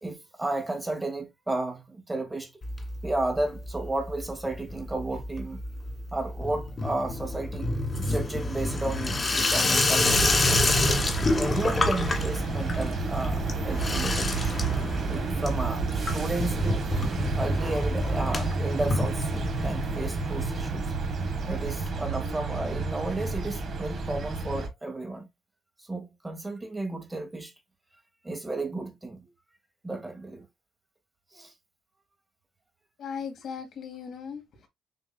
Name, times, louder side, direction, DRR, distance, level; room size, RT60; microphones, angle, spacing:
voice 1, 0.0-2.5 3.0-5.6 6.1-10.9 11.3-14.6 15.1-16.9 17.3-20.9 21.4-25.3 25.8-27.5 28.2-29.3 29.8-30.4 31.3-31.5, right 2 dB, 15° right, 1.3 m, -33 dB
Water tap faucet / Sink (filling or washing), 2.6-3.4 3.7-4.2 4.5-19.8 20.1-20.2 20.4-20.5 20.7-20.8 21.9-22.0, left 2 dB, 30° left, 1.6 m, -28 dB
sound 1, 10.0-24.7, right 3 dB, 55° right, 1.5 m, -30 dB
voice 2, 33.0-34.7, left 6 dB, 70° left, 1.9 m, -38 dB
6.7 x 2.7 x 2.2 m
cardioid pair, 90°, 0 cm